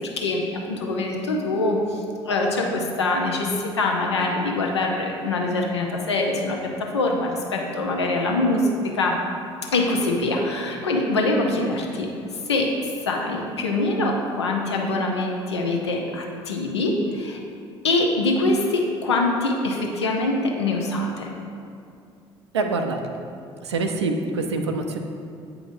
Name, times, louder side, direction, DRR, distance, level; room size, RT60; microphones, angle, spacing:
voice 1, 0.0-8.7 8.9-9.2 9.7-12.1 12.5-12.7 13.1-17.4 17.8-21.3, left 2 dB, 85° left, 1 dB, 0.6 m, -24 dB
voice 2, 22.5-23.0 23.6-25.0, right 3 dB, 85° right, 4 dB, 0.4 m, -25 dB
8.4 x 4.8 x 2.6 m, 2.4 s
figure-of-eight pair, 55°, 14 cm